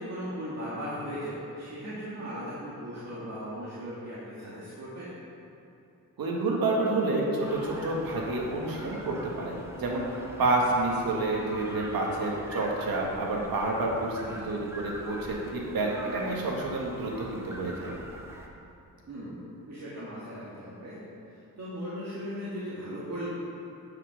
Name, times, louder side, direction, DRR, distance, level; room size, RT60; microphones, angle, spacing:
voice 1, 0.0-5.1 14.3-14.5 19.1-21.0 21.3-23.3, equal, 50° right, -9 dB, 2.2 m, -38 dB
voice 2, 6.2-10.0 10.4-17.9, right 2 dB, 85° right, -2 dB, 1.8 m, -29 dB
sound 1, 7.4-18.5, right 1 dB, 5° right, 1.3 m, -43 dB
10.0 x 5.9 x 6.5 m, 2.7 s
cardioid pair, 85°, 34 cm